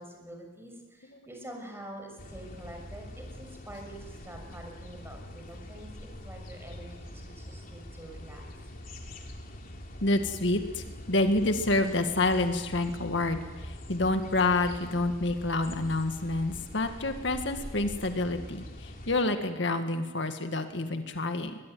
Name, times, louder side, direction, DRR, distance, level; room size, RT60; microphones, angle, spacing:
voice 1, 0.0-5.9 6.2-8.4, right 1 dB, 15° right, 3 dB, 6.2 m, -46 dB
sound 1, 2.2-19.2, left 1 dB, 50° left, 3.3 m, -44 dB
voice 2, 10.0-21.6, left 2 dB, 70° left, 6 dB, 1.9 m, -28 dB
22.0 x 22.0 x 9.4 m, 1.2 s
head